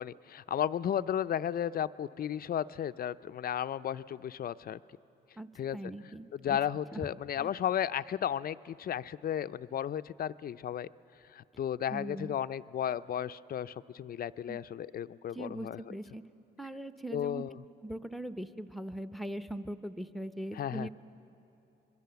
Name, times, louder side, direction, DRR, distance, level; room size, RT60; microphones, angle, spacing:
voice 1, 0.0-4.8 5.6-5.8 6.3-10.9 11.3-15.8 17.1-17.5 20.5-20.9, left 10 dB, 50° left, 13 dB, 0.5 m, -34 dB
voice 2, 5.4-6.6 6.9-7.1 7.4-7.5 11.9-12.3 14.5-14.6 15.3-16.2 16.6-17.4 17.8-20.9, right 1 dB, ahead, 10 dB, 0.8 m, -40 dB
25.5 x 22.0 x 6.9 m, 2.8 s
cardioid pair, 90°, 20 cm